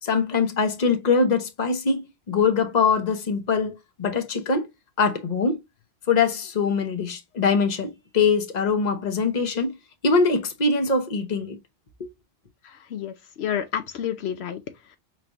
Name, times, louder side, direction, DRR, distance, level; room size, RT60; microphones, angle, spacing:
voice 1, 0.0-4.7 5.0-5.6 6.1-9.7 10.0-11.6, left 4 dB, 45° left, 1.0 m, -23 dB
voice 2, 12.6-14.6, left 9 dB, 80° left, 0.9 m, -30 dB
5.7 x 3.2 x 2.5 m
omnidirectional pair, 1.1 m